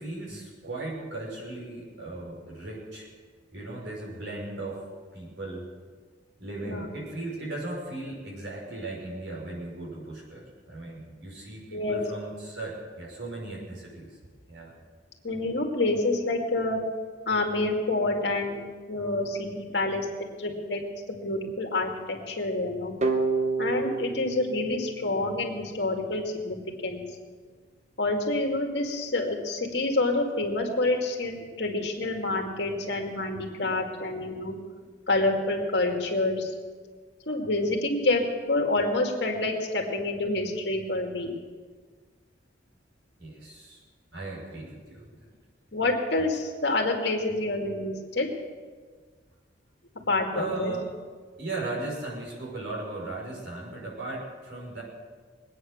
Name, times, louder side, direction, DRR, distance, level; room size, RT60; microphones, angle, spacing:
voice 1, 0.0-3.1 3.5-4.8 5.1-5.7 6.4-14.2 14.5-14.8 43.2-43.8 44.1-45.1 46.2-46.3 50.3-50.8 51.4-54.8, right 2 dB, 70° right, -3 dB, 5.8 m, -37 dB
voice 2, 11.7-12.0 15.2-16.8 17.3-20.8 21.1-23.0 23.6-26.6 26.8-27.0 28.0-34.6 35.1-36.5 37.3-41.3 45.7-48.3 50.1-50.7, left 2 dB, 65° left, 2 dB, 2.3 m, -28 dB
sound 1, 23.0-25.8, right 3 dB, 35° right, 1.1 m, -29 dB
22.0 x 9.2 x 6.5 m, 1.5 s
head